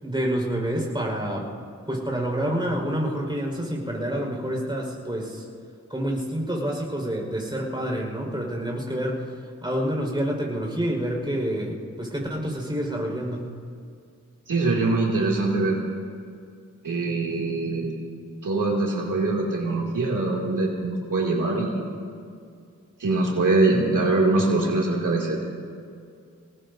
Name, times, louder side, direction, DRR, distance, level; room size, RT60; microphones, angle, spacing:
voice 1, 0.0-1.5 1.9-5.4 5.9-9.2 9.6-13.5, equal, 15° right, -1 dB, 5.0 m, -28 dB
voice 2, 14.5-15.8 16.8-17.9 18.4-21.8 23.0-25.4, right 2 dB, 90° right, -3 dB, 2.6 m, -23 dB
26.5 x 19.0 x 2.7 m, 2.3 s
wide cardioid pair, 70°, 31 cm